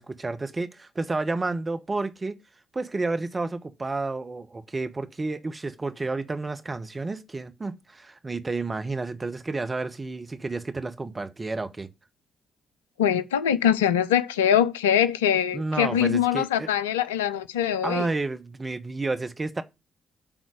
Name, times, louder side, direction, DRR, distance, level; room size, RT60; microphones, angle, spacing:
voice 1, 0.0-2.4 2.7-11.9 15.5-16.7 17.8-19.6, right 3 dB, 30° right, 1.2 m, -31 dB
voice 2, 13.0-18.1, left 9 dB, 85° left, 0.4 m, -23 dB
9.0 x 4.0 x 6.3 m
figure-of-eight pair, 40°, 0 cm